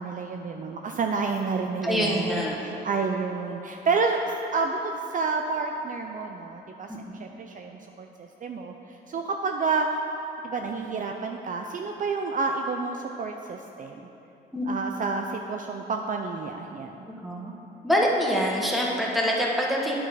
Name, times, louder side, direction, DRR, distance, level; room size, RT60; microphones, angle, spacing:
voice 1, 0.0-4.2 4.5-6.9 7.2-9.9 10.4-14.1 14.7-17.1, right 4 dB, 40° right, 3 dB, 0.5 m, -29 dB
voice 2, 1.8-2.6 6.9-7.2 14.5-14.7 17.1-17.5 17.8-20.0, equal, ahead, -3 dB, 1.4 m, -25 dB
9.1 x 6.2 x 4.8 m, 3.0 s
cardioid pair, 90°, 20 cm